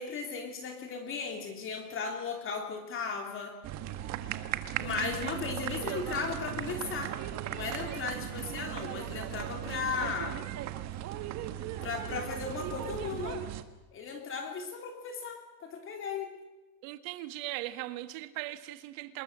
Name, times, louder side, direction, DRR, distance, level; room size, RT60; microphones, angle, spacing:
voice 1, 0.0-3.5 4.8-7.1 7.5-10.4 11.8-13.4 13.9-16.3, left 5 dB, 25° left, 3.4 m, -36 dB
sound 1, 3.6-13.6, right 12 dB, 35° right, 1.6 m, -37 dB
voice 2, 5.0-5.4 5.8-6.0 16.8-19.2, right 16 dB, 55° right, 1.9 m, -39 dB
26.0 x 21.0 x 7.6 m
supercardioid pair, 160°, 49 cm